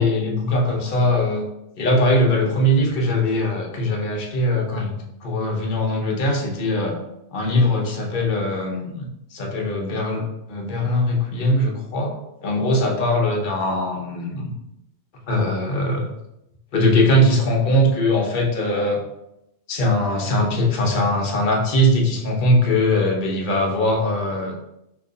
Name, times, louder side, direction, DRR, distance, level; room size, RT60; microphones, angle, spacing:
voice 1, 0.0-1.4 1.8-7.0 7.3-12.1 12.4-14.5 15.3-16.1 16.7-19.0 19.7-24.6, left 1 dB, 50° left, 0 dB, 0.8 m, -21 dB
3.0 x 2.5 x 3.8 m, 0.85 s
omnidirectional pair, 1.1 m